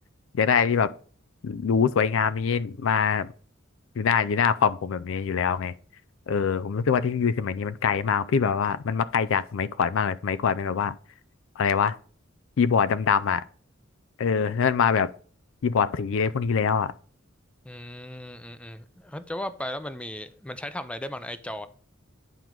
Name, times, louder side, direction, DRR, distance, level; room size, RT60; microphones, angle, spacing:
voice 1, 0.3-0.9 1.4-3.3 4.0-5.7 6.3-10.9 11.6-12.0 12.6-13.4 14.2-15.1 15.6-16.9, left 6 dB, 70° left, 0.4 m, -24 dB
voice 2, 17.6-21.7, left 1 dB, 5° left, 0.4 m, -36 dB
9.1 x 4.6 x 3.7 m
head